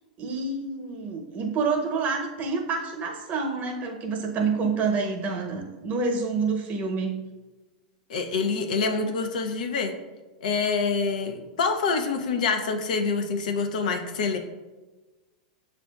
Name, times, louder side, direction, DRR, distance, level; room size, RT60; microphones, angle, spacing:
voice 1, 0.2-7.2, right 4 dB, 35° right, 2 dB, 0.9 m, -28 dB
voice 2, 8.1-9.9 10.4-14.4, left 4 dB, 75° left, 5 dB, 0.6 m, -26 dB
7.4 x 2.5 x 2.3 m, 1.2 s
hypercardioid pair, 105°, 4 cm